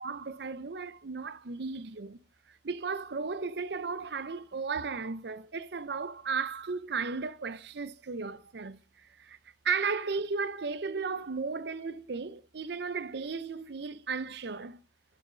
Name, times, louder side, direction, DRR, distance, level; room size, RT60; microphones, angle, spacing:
voice 1, 0.0-2.2 2.6-8.8 9.2-9.4 9.6-14.8, right 5 dB, 65° right, 0.7 m, -35 dB
11.0 x 5.7 x 5.0 m
head